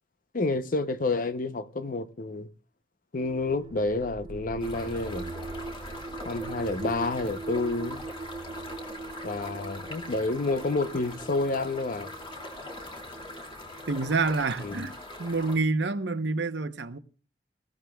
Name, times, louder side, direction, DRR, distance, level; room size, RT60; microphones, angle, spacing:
voice 1, 0.3-2.5 3.1-5.3 6.2-8.1 9.2-12.1 14.6-14.8, left 2 dB, 50° left, 0.7 m, -29 dB
sound 1, 3.2-15.0, right 3 dB, 35° right, 0.6 m, -41 dB
sound 2, 4.6-15.6, left 1 dB, 30° left, 2.5 m, -42 dB
voice 2, 13.9-17.0, right 3 dB, 85° right, 0.9 m, -28 dB
19.0 x 15.5 x 2.3 m
head